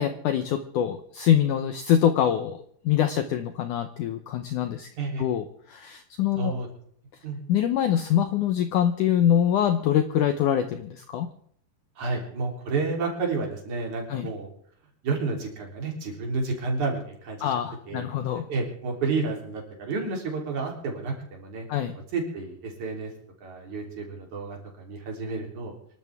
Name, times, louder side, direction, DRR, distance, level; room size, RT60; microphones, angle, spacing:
voice 1, 0.0-4.9 5.2-6.5 7.5-11.3 14.1-14.3 17.4-18.5 21.7-21.9, left 10 dB, 90° left, 8 dB, 1.8 m, -24 dB
voice 2, 6.4-6.7 7.2-7.4 12.0-14.5 15.0-17.5 17.9-18.1 18.5-21.7 22.1-23.1 23.4-25.7, right 3 dB, 45° right, 0 dB, 4.6 m, -30 dB
26.5 x 12.5 x 3.6 m, 0.62 s
omnidirectional pair, 4.8 m